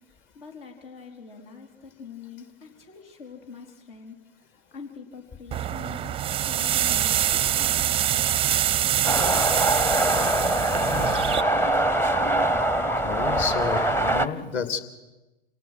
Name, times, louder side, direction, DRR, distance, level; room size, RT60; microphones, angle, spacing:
voice 1, 0.3-4.2 4.7-8.5 8.9-9.4, left 5 dB, 65° left, 1 dB, 4.3 m, -44 dB
sound 1, 5.5-11.4, right 11 dB, 20° right, 0.6 m, -25 dB
sound 2, 9.0-14.3, right 1 dB, 10° left, 0.9 m, -23 dB
voice 2, 10.9-11.2 13.0-14.8, left 6 dB, 40° left, 8 dB, 2.7 m, -31 dB
27.5 x 18.0 x 6.1 m, 1.1 s
hypercardioid pair, 105°, 30 cm